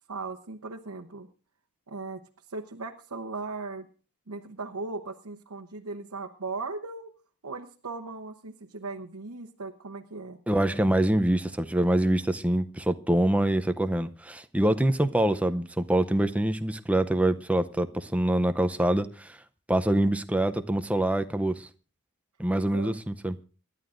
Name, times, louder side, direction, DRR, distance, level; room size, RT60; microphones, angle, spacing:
voice 1, 0.1-1.3 1.9-2.2 2.5-3.9 4.3-7.1 7.4-10.4 22.5-23.0, right 3 dB, 80° right, 1.0 m, -38 dB
voice 2, 10.5-19.4 19.7-21.7 22.4-23.4, right 1 dB, 5° right, 0.6 m, -25 dB
26.0 x 11.5 x 2.6 m
head